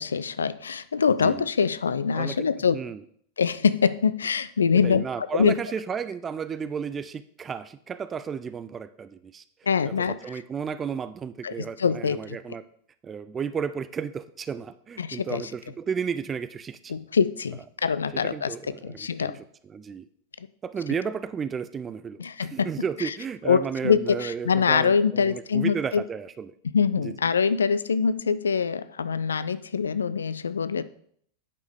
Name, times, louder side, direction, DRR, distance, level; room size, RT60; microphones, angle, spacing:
voice 1, 0.0-2.7 3.4-5.0 5.3-5.5 9.7-10.2 11.4-12.4 15.0-15.4 16.9-18.5 18.8-19.4 22.2-22.7 23.5-26.0 26.7-30.8, left 6 dB, 70° left, 15 dB, 0.3 m, -24 dB
voice 2, 1.1-1.5 2.1-2.5 2.7-3.0 4.7-9.4 9.8-12.6 13.0-16.9 18.2-20.1 20.6-26.5 27.0-27.2, right 6 dB, 20° right, 13 dB, 0.3 m, -33 dB
9.0 x 5.4 x 3.6 m, 0.64 s
figure-of-eight pair, 90°, 0 cm